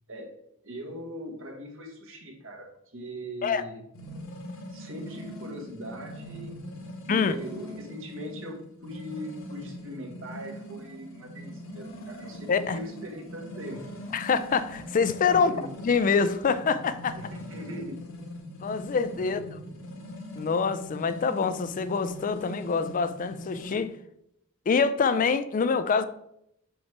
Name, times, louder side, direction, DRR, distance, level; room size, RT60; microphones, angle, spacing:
voice 1, 0.1-3.8 4.7-6.6 7.1-13.9 15.3-15.8 17.2-18.0 19.1-19.7, equal, 65° right, 1.5 m, -40 dB
sound 1, 3.9-23.8, left 1 dB, 65° left, 1.4 m, -42 dB
voice 2, 12.5-12.8 14.1-15.5 15.8-17.2 18.6-19.4 20.3-23.9 24.7-26.0, left 5 dB, 40° left, 0.4 m, -25 dB
5.8 x 4.7 x 4.2 m
head